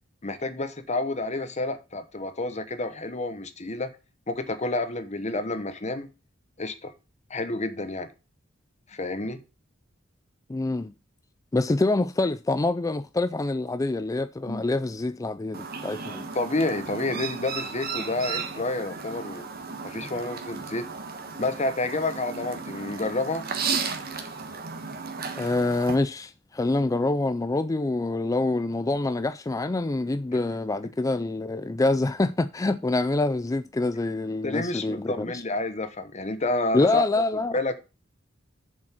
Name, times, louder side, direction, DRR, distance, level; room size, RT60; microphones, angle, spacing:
voice 1, 0.2-4.0 4.3-6.1 6.6-6.9 7.3-8.1 8.9-9.4 14.5-14.6 16.3-19.5 19.8-20.8 21.4-23.5 34.4-37.1 37.5-37.8, left 2 dB, 35° left, 1.1 m, -29 dB
voice 2, 10.5-10.9 11.5-16.2 25.4-35.4 36.7-37.6, left 2 dB, 15° left, 0.3 m, -26 dB
Chirp tweet, 15.5-25.9, right 5 dB, 50° right, 1.5 m, -34 dB
7.2 x 5.2 x 7.2 m
head